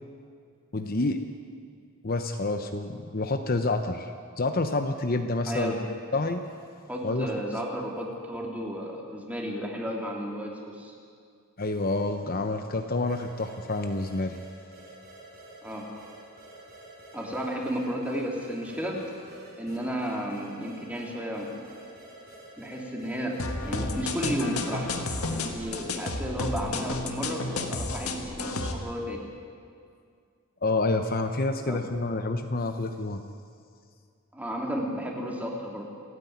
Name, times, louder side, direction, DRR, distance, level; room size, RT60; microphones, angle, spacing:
voice 1, 0.7-1.2 2.0-4.1 4.4-5.7 6.1-6.4 7.0-7.3 11.6-14.4 30.6-33.2, left 2 dB, 40° left, 6 dB, 0.8 m, -28 dB
voice 2, 5.5-5.8 6.9-10.9 15.6-15.9 17.1-19.0 19.6-21.6 22.6-24.9 25.3-29.2 31.6-31.8 34.3-35.9, equal, 5° right, -1 dB, 2.8 m, -33 dB
sound 1, 13.1-26.4, right 1 dB, 45° right, 7.1 m, -49 dB
sound 2, 23.4-28.7, left 2 dB, 80° left, 1.8 m, -32 dB
28.5 x 9.8 x 9.4 m, 2.2 s
head